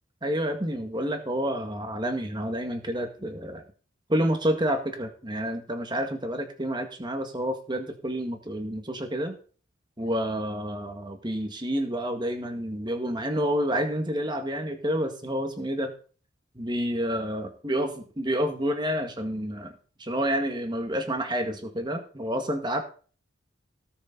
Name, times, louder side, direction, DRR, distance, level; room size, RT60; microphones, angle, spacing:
voice 1, 0.2-3.6 4.1-9.4 10.0-15.9 16.5-19.7 20.0-22.8, equal, 20° right, 6 dB, 1.7 m, -29 dB
18.0 x 6.6 x 4.0 m, 0.40 s
head